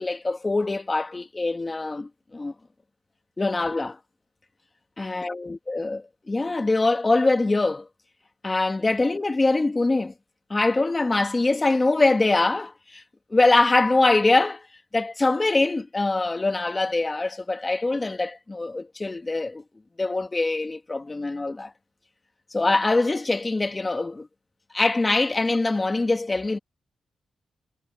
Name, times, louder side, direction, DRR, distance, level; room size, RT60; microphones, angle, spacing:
voice 1, 0.0-2.5 3.4-4.0 5.0-7.9 8.4-10.1 10.5-13.0 13.3-14.6 14.9-19.6 20.0-21.7 22.5-24.3 24.7-26.6, left 2 dB, 25° left, 1.6 m, -23 dB
wide cardioid pair, 120°, 0 cm